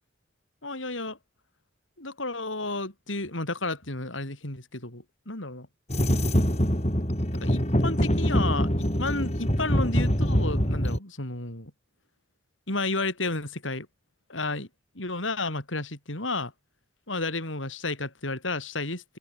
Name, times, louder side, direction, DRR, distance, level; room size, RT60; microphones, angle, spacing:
voice 1, 0.6-1.2 2.0-5.7 7.4-11.7 12.7-13.9 14.3-14.7 14.9-16.5 17.1-19.0, left 2 dB, 90° left, 6.6 m, -32 dB
sound 1, 5.9-11.0, equal, 35° left, 6.9 m, -24 dB
open air
head